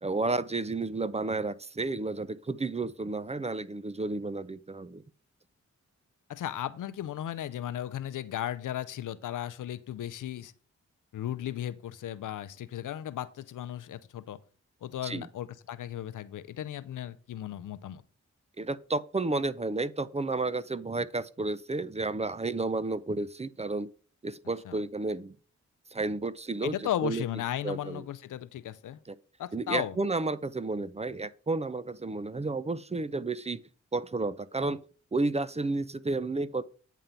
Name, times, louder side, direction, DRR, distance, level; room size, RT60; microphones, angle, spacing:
voice 1, 0.0-5.0 15.0-15.3 18.6-23.9 24.2-25.4 25.9-26.8 27.0-27.2 27.6-28.0 29.1-29.2 29.5-33.6 33.9-34.8 35.1-36.6, right 3 dB, 20° right, 0.5 m, -31 dB
voice 2, 6.3-10.5 11.1-14.4 14.8-18.0 24.6-24.8 26.6-29.0 29.4-30.0, left 11 dB, 90° left, 0.6 m, -35 dB
9.1 x 3.7 x 5.6 m
cardioid pair, 55°, 30 cm